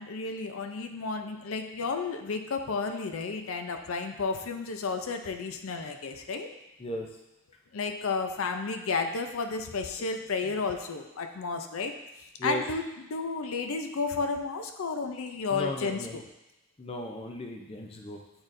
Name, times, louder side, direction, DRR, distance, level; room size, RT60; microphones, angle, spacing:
voice 1, 0.0-6.5 7.7-12.0 12.4-12.9 13.1-16.2, left 4 dB, 80° left, 6 dB, 0.5 m, -32 dB
voice 2, 15.5-16.2 16.8-18.2, left 1 dB, 25° left, 2 dB, 0.5 m, -36 dB
8.7 x 4.3 x 2.6 m, 0.91 s
head